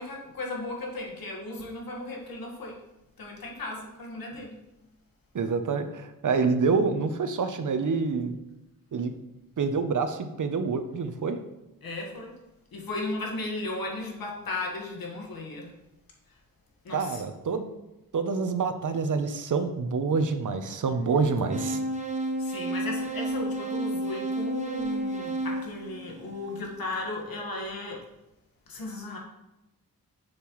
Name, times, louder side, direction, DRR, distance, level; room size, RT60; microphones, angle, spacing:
voice 1, 0.0-2.8 3.2-4.6 11.8-12.4 12.7-15.7 16.3-16.4 16.8-17.2 22.4-28.1 28.7-29.2, left 2 dB, 75° left, -1 dB, 1.7 m, -36 dB
voice 2, 5.3-8.4 8.9-9.1 9.6-11.4 16.9-17.6 18.1-21.8, right 4 dB, 60° right, 9 dB, 0.8 m, -27 dB
sound 1, 21.5-26.6, right 1 dB, 20° right, 1.0 m, -31 dB
6.8 x 6.6 x 3.1 m, 0.94 s
cardioid pair, 55°, 36 cm